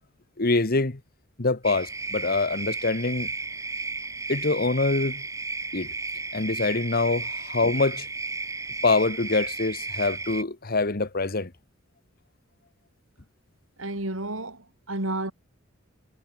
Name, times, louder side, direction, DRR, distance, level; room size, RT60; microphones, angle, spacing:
voice 1, 0.4-1.0 1.4-3.3 4.3-5.2 5.7-5.9 6.3-8.1 8.8-11.5, left 3 dB, 50° left, 1.4 m, -25 dB
sound 1, 1.6-10.4, right 3 dB, 15° right, 4.2 m, -34 dB
voice 2, 13.8-15.3, right 2 dB, 90° right, 4.6 m, -31 dB
head